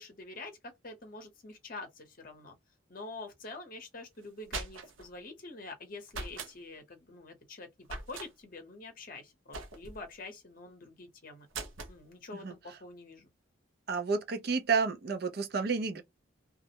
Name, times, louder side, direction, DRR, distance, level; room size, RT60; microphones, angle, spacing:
voice 1, 0.0-2.6 2.9-11.5 11.9-13.3, left 2 dB, 45° left, 0.8 m, -46 dB
sound 1, 4.2-5.1 6.1-6.5 7.8-8.3 9.5-10.0 11.5-12.0, right 3 dB, 85° right, 0.7 m, -41 dB
voice 2, 13.9-16.0, right 5 dB, 50° right, 0.5 m, -30 dB
2.3 x 2.0 x 2.8 m
head